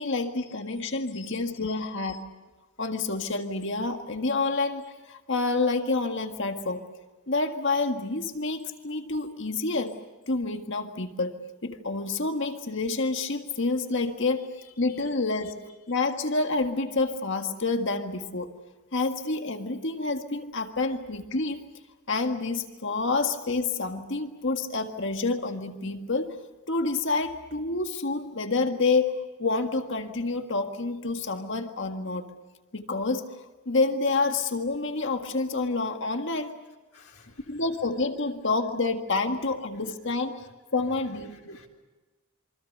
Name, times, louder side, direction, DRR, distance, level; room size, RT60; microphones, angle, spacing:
voice 1, 0.0-2.3 2.8-6.9 7.3-10.0 10.3-15.6 15.9-18.5 18.9-21.6 22.1-26.4 26.7-32.3 32.7-36.6 37.5-40.5 40.7-41.6, left 3 dB, 55° left, 6 dB, 1.8 m, -28 dB
voice 2, 1.1-1.8 2.1-2.2 36.9-37.6 41.3-41.7, left 7 dB, 75° left, 2 dB, 4.1 m, -52 dB
27.0 x 25.0 x 6.7 m, 1.2 s
head